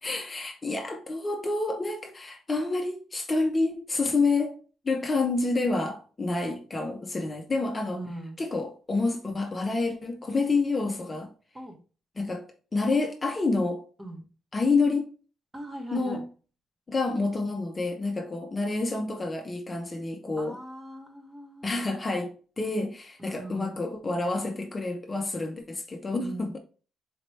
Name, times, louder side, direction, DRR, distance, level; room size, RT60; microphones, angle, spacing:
voice 1, 0.0-4.6 4.8-8.0 8.4-11.3 12.2-13.9 14.5-15.1 15.9-16.2 16.9-20.6 21.6-26.6, left 3 dB, 25° left, 0.7 m, -28 dB
voice 2, 7.9-8.4 11.5-11.8 14.0-14.2 15.5-16.2 20.4-21.7 23.2-23.8 26.2-26.6, right 1 dB, 20° right, 1.3 m, -40 dB
4.2 x 2.9 x 3.2 m
cardioid pair, 90°, 0 cm